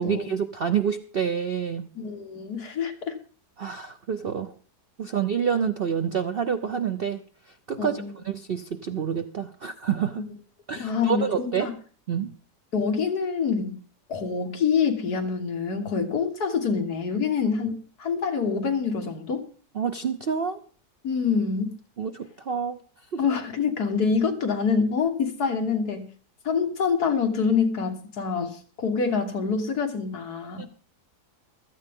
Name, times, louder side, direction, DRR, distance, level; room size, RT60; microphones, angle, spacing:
voice 1, 0.0-1.9 3.6-4.5 5.0-7.2 7.7-10.3 10.7-11.7 12.1-12.3 19.7-20.6 22.0-22.8 23.1-23.2 30.6-30.7, right 7 dB, 60° right, 0.6 m, -28 dB
voice 2, 2.0-3.2 7.8-8.2 10.8-11.7 12.7-13.8 14.1-19.5 21.0-21.7 23.2-26.1 26.5-30.7, left 5 dB, 65° left, 2.0 m, -26 dB
15.5 x 13.0 x 3.6 m
omnidirectional pair, 1.8 m